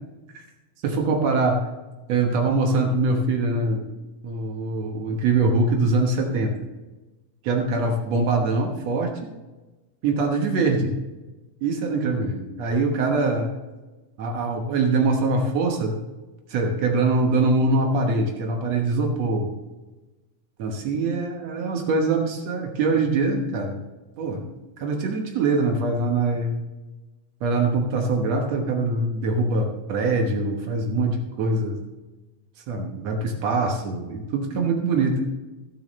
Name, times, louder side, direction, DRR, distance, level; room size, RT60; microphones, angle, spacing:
voice 1, 0.8-1.6 2.1-3.9 4.2-6.5 7.4-9.1 10.0-10.9 11.6-13.5 14.2-16.1 16.5-19.5 20.6-23.8 24.2-24.5 24.8-26.5 27.4-31.8 32.7-35.2, right 3 dB, 75° right, 2 dB, 1.5 m, -23 dB
13.5 x 12.5 x 3.2 m, 1.1 s
omnidirectional pair, 5.0 m